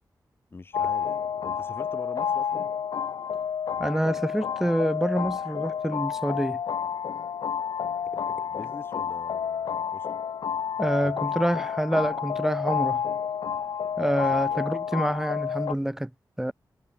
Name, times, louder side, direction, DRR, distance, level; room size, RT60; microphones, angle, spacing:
voice 1, 0.5-2.7 8.1-10.1 10.8-11.2 14.3-14.6, left 3 dB, 30° left, 6.9 m, -45 dB
sound 1, 0.7-15.7, left 7 dB, 85° left, 1.7 m, -30 dB
voice 2, 3.8-6.6 10.8-13.0 14.0-16.1 16.4-16.5, right 1 dB, 5° right, 3.5 m, -27 dB
wide cardioid pair, 160°, 7 cm